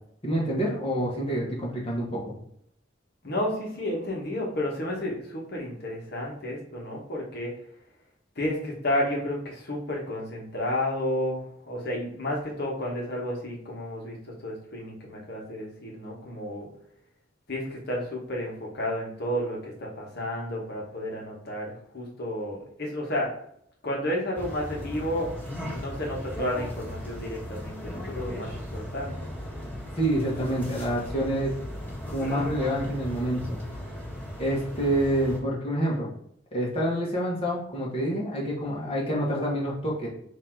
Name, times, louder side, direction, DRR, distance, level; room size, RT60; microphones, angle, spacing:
voice 1, 0.2-2.2 30.0-31.5 32.1-33.6 34.4-36.1 36.5-40.1, right 1 dB, 30° left, -4 dB, 1.3 m, -27 dB
voice 2, 3.2-7.5 8.3-16.7 17.5-23.3 23.8-25.3 25.7-29.1, left 1 dB, 60° left, -2 dB, 1.2 m, -31 dB
sound 1, 24.3-35.4, equal, 10° left, 1.5 m, -37 dB
4.1 x 2.8 x 4.5 m, 0.70 s
head